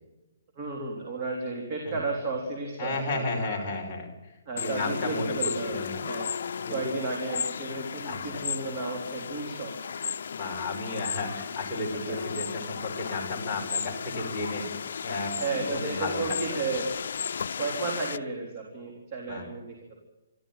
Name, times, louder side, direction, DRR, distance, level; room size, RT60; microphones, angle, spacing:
voice 1, 0.6-3.7 4.5-5.8 6.1-6.3 6.7-9.8 11.9-12.2 15.4-17.0 17.6-20.0, right 3 dB, 25° right, 0 dB, 3.6 m, -33 dB
voice 2, 2.8-6.0 6.6-7.0 8.0-8.5 10.4-14.7 15.0-16.4 19.3-19.5, left 2 dB, 10° left, -5 dB, 5.2 m, -33 dB
sound 1, 4.6-18.2, left 7 dB, 60° left, 0.7 m, -35 dB
26.0 x 13.5 x 9.0 m, 1.0 s
hypercardioid pair, 170°, 0 cm